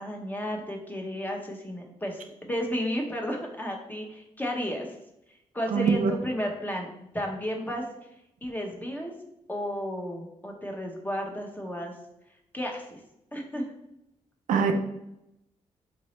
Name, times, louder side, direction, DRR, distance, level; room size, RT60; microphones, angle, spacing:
voice 1, 0.0-4.9 5.5-7.8 8.4-9.1 9.5-11.9 12.5-13.0 13.3-13.6, equal, 15° left, 1 dB, 0.9 m, -33 dB
voice 2, 5.7-6.1 14.5-14.7, right 6 dB, 85° right, 6 dB, 0.4 m, -23 dB
4.0 x 2.6 x 3.1 m, 0.83 s
cardioid pair, 65°, 13 cm